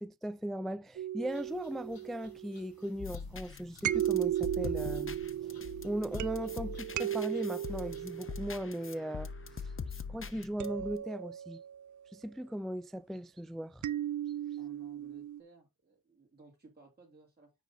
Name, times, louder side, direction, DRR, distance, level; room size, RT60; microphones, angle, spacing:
voice 1, 0.0-5.5 5.8-9.3 9.9-11.6 12.1-13.8, equal, ahead, 0.3 m, -38 dB
sound 1, 1.0-2.9 3.8-9.6 10.6-12.0 13.8-15.4, right 11 dB, 60° right, 0.5 m, -36 dB
sound 2, 1.3-8.3, left 4 dB, 85° left, 3.0 m, -63 dB
sound 3, 3.0-11.0, left 5 dB, 35° left, 0.8 m, -43 dB
voice 2, 14.6-17.5, right 3 dB, 25° right, 2.6 m, -58 dB
8.4 x 6.3 x 2.7 m
cardioid pair, 65°, 35 cm